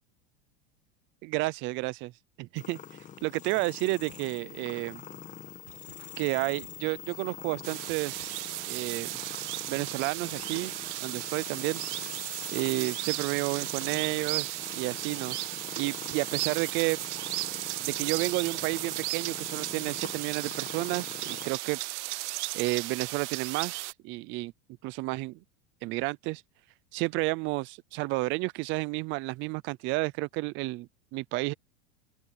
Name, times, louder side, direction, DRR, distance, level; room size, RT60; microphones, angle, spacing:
voice 1, 1.2-2.1 2.4-2.8 3.2-5.0 6.2-8.4 8.7-9.1 9.7-10.7 11.0-11.8 12.5-15.4 15.8-17.0 17.8-21.8 22.5-24.5 24.8-25.4 25.8-26.4 26.9-31.5, right 22 dB, 35° right, 0.5 m, -31 dB
sound 1, 2.6-21.5, left 9 dB, 20° left, 1.8 m, -45 dB
sound 2, 4.1-5.4 5.7-9.4, right 15 dB, 85° right, 1.8 m, -58 dB
sound 3, 7.6-23.9, right 21 dB, 70° right, 0.7 m, -35 dB
open air
supercardioid pair, 160°, 36 cm